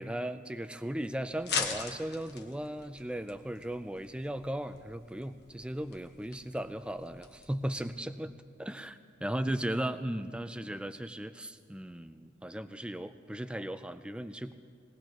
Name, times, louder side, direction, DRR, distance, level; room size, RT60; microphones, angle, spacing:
voice 1, 0.0-14.5, right 1 dB, 5° right, 11 dB, 0.4 m, -37 dB
sound 1, 1.3-7.9, left 5 dB, 55° left, 1.2 m, -41 dB
21.0 x 19.0 x 3.0 m, 2.3 s
head